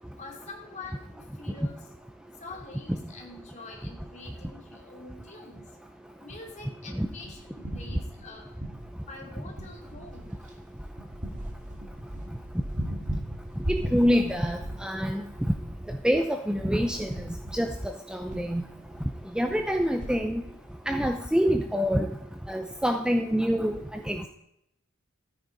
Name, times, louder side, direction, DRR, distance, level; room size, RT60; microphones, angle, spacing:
voice 1, 0.2-1.8 2.4-5.7 6.2-8.4 9.1-10.3, left 3 dB, 35° left, 0 dB, 2.7 m, -45 dB
sound 1, 7.0-9.2 9.5-20.2, right 1 dB, 35° right, 2.2 m, -38 dB
voice 2, 13.7-15.2 15.9-17.1 17.5-17.7 18.1-18.6 19.4-20.4 20.9-22.1 22.5-24.3, equal, 5° right, 5 dB, 0.6 m, -26 dB
13.0 x 9.4 x 5.2 m, 0.78 s
head